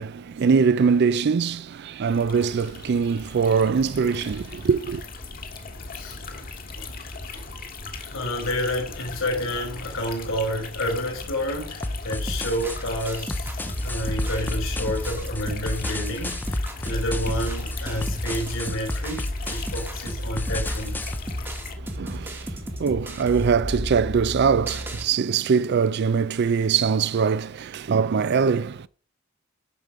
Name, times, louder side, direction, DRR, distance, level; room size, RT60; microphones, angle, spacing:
voice 1, 0.0-5.0 21.8-28.9, right 6 dB, 55° right, 0.4 m, -22 dB
sound 1, 2.1-21.8, left 3 dB, 45° left, 1.7 m, -38 dB
voice 2, 5.9-6.5 6.8-6.9 7.3-7.5 8.1-21.1 21.4-21.5, left 1 dB, 75° left, 3.7 m, -30 dB
sound 2, 11.8-21.2, left 1 dB, 10° left, 0.4 m, -32 dB
sound 3, 12.3-25.1, equal, 10° right, 1.2 m, -33 dB
12.5 x 5.1 x 4.9 m
head